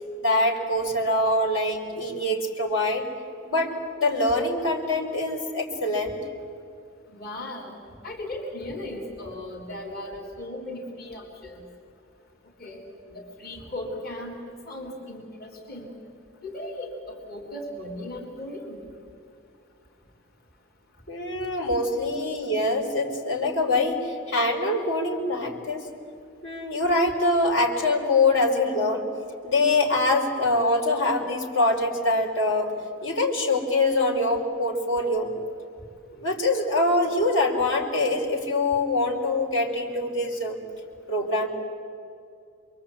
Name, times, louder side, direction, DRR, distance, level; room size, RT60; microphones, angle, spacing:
voice 1, 0.2-3.1 3.4-6.2 21.1-25.9 26.4-29.1 29.4-32.7 33.0-35.3 36.1-40.6 41.1-41.5, left 2 dB, 75° left, -1 dB, 4.5 m, -24 dB
voice 2, 7.1-7.8 8.0-11.7 12.6-12.8 13.1-15.9 16.4-18.8, left 1 dB, 50° left, 0 dB, 3.9 m, -37 dB
27.5 x 23.5 x 8.7 m, 2.5 s
head